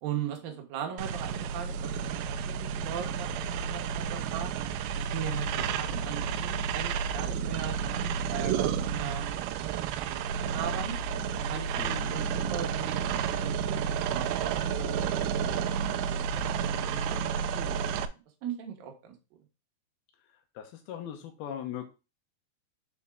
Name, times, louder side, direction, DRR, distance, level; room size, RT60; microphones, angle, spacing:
voice 1, 0.0-4.5 5.0-10.9 11.4-16.2 16.6-18.1 18.4-19.1, right 9 dB, 65° right, 2 dB, 2.4 m, -39 dB
sound 1, 1.0-18.1, right 7 dB, 85° right, 2.5 m, -31 dB
voice 2, 11.8-12.1 20.6-21.9, left 9 dB, 90° left, 3 dB, 2.1 m, -39 dB
7.0 x 4.2 x 3.7 m, 0.29 s
omnidirectional pair, 5.6 m